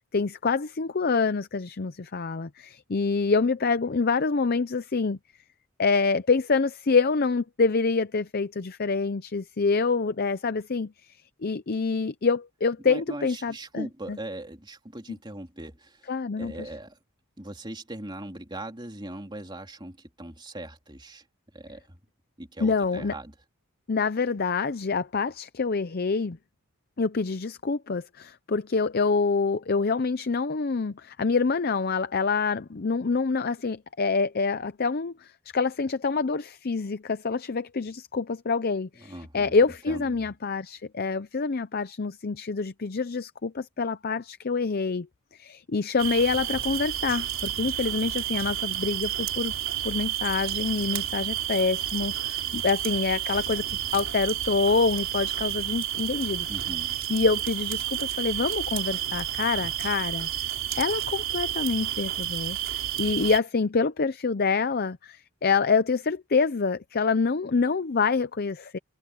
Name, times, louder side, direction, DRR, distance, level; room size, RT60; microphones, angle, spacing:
voice 1, 0.0-5.2 5.8-11.1 11.4-14.2 16.1-16.7 22.6-23.1 23.9-26.4 27.0-45.1 45.3-49.5 49.8-56.5 57.1-60.3 60.7-68.8, left 4 dB, 45° left, 0.6 m, -26 dB
voice 2, 12.8-17.0 17.4-21.2 21.5-22.0 22.4-23.3 38.9-39.5 39.9-40.3 56.5-56.9, right 1 dB, 20° right, 3.4 m, -40 dB
sound 1, 46.0-63.4, right 12 dB, 65° right, 3.8 m, -30 dB
head